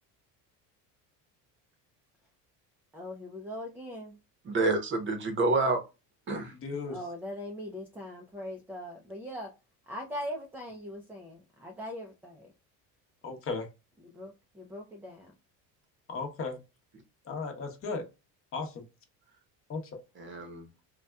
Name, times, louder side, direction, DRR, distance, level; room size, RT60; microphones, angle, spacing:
voice 1, 2.9-4.2 6.9-9.5 9.9-12.5 14.0-15.3, left 1 dB, 5° right, 0.4 m, -41 dB
voice 2, 4.4-5.8 6.3-6.5 20.2-20.7, right 3 dB, 30° right, 0.8 m, -28 dB
voice 3, 6.6-7.0 13.2-13.7 16.1-16.6 17.3-18.0 18.5-18.8 19.7-19.8, left 4 dB, 35° left, 0.9 m, -35 dB
4.0 x 2.2 x 2.2 m
cardioid pair, 135°, 37 cm